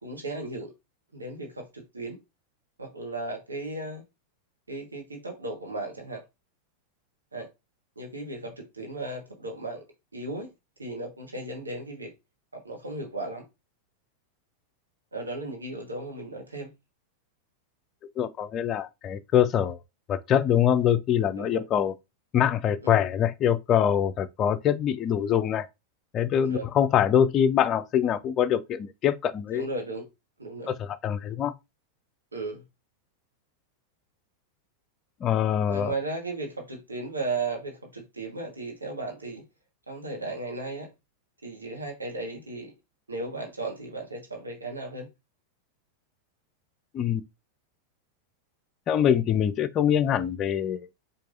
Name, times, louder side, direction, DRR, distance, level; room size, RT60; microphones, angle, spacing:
voice 1, 0.0-0.7 1.1-2.2 2.8-4.0 4.7-6.2 7.3-7.5 8.0-9.8 10.1-10.5 10.8-12.1 12.5-13.4 15.1-16.7 21.4-21.6 22.8-23.0 26.4-26.7 29.5-30.1 30.4-30.7 32.3-32.6 35.7-39.4 39.9-40.9 41.4-42.7 43.1-45.1, right 2 dB, 75° right, 1.1 m, -35 dB
voice 2, 18.2-19.8 20.1-21.9 22.3-25.7 26.1-29.7 30.7-31.5 35.2-35.9 46.9-47.2 48.9-50.8, left 9 dB, 30° left, 0.4 m, -24 dB
4.6 x 2.5 x 2.5 m
figure-of-eight pair, 90°, 0 cm